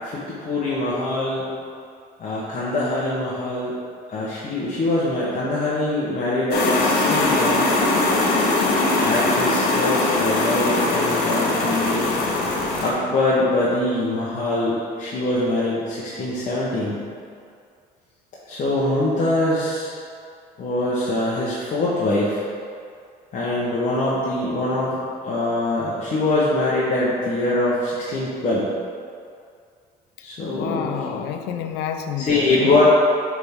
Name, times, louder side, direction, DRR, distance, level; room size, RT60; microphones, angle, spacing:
voice 1, 0.0-1.4 2.2-3.7 4.1-7.7 9.0-12.1 12.8-17.0 18.5-19.9 20.6-22.4 23.3-28.6 30.2-30.9 32.2-32.8, left 2 dB, 45° left, -7 dB, 1.2 m, -23 dB
sound 1, 6.5-12.9, left 2 dB, 70° left, 1.0 m, -21 dB
voice 2, 30.5-32.8, left 8 dB, 90° left, 7 dB, 0.5 m, -29 dB
8.5 x 3.6 x 3.6 m, 2.2 s
cardioid pair, 110°, 17 cm